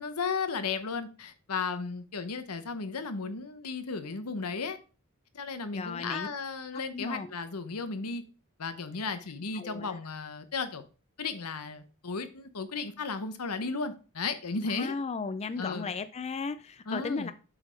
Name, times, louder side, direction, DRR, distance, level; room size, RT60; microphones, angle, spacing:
voice 1, 0.0-4.8 5.3-8.2 8.6-10.8 11.2-14.9 15.6-15.9 16.9-17.3, left 4 dB, 85° left, 1.0 m, -35 dB
voice 2, 5.7-6.3 6.9-7.3 9.5-10.0 14.6-17.3, left 4 dB, 30° left, 0.4 m, -35 dB
7.8 x 4.1 x 5.1 m
head